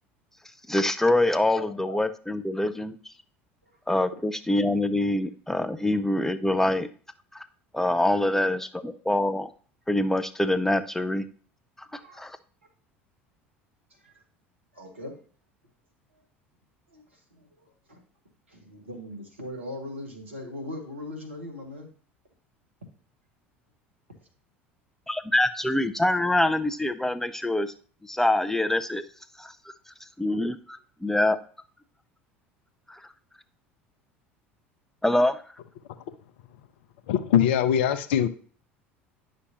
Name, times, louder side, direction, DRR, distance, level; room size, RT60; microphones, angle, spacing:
voice 1, 0.7-3.0 3.9-6.9 7.3-7.4 7.7-9.5 9.9-11.2 11.8-12.4 25.1-27.7 28.0-29.0 29.4-29.5 30.2-31.4 32.9-33.1 35.0-35.4, left 1 dB, 5° left, 0.6 m, -25 dB
voice 2, 1.7-2.0 3.6-3.7 4.1-4.2 8.3-8.5 11.9-12.3 14.0-14.1 14.7-15.2 16.9-17.0 17.3-18.0 18.5-21.9, left 1 dB, 85° right, 1.7 m, -40 dB
voice 3, 37.1-38.3, left 9 dB, 65° left, 0.7 m, -22 dB
9.7 x 6.2 x 2.9 m
figure-of-eight pair, 70°, 7 cm